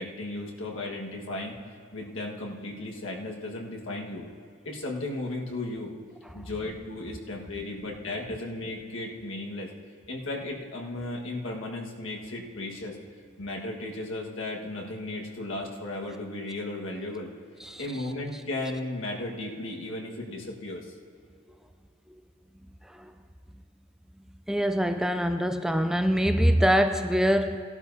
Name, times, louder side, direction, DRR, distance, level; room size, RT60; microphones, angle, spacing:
voice 1, 0.0-1.6 1.9-4.2 4.6-5.9 6.3-9.7 10.1-13.0 13.4-17.3 17.8-20.9, left 2 dB, 80° left, -1 dB, 1.6 m, -35 dB
voice 2, 24.5-27.6, equal, 5° right, 8 dB, 0.3 m, -24 dB
17.5 x 11.5 x 2.7 m, 2.4 s
head